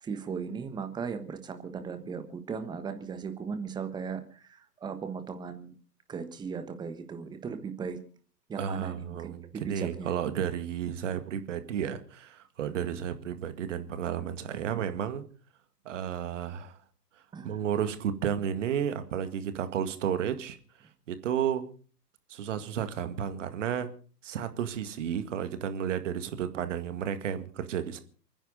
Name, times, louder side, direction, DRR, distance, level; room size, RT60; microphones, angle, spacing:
voice 1, 0.0-5.8 6.1-8.0 8.5-10.1 17.3-17.6, right 6 dB, 10° right, 9 dB, 1.3 m, -37 dB
voice 2, 8.6-15.2 15.9-16.8 17.4-20.6 21.1-21.7 22.3-23.9 24.2-28.0, right 9 dB, 45° right, 10 dB, 2.1 m, -32 dB
28.5 x 10.0 x 4.0 m, 0.40 s
figure-of-eight pair, 120°, 50 cm